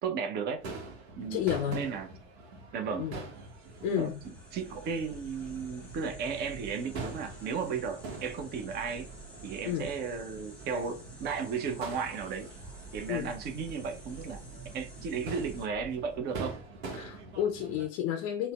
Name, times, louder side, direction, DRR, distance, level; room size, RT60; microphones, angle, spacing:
voice 1, 0.0-0.6 1.2-1.4 1.7-2.1 2.7-3.1 3.8-9.1 9.4-12.5 12.9-14.4 14.7-16.6, right 6 dB, 30° right, 0.5 m, -35 dB
Crowd / Fireworks, 0.6-17.9, right 3 dB, 70° right, 0.9 m, -45 dB
voice 2, 1.3-1.9 3.0-3.2 3.8-4.2 9.7-9.9 13.1-13.3 16.9-18.5, left 10 dB, 45° left, 0.5 m, -31 dB
sound 1, 3.3-15.7, right 2 dB, 5° left, 1.0 m, -49 dB
3.9 x 2.0 x 2.3 m
figure-of-eight pair, 85°, 34 cm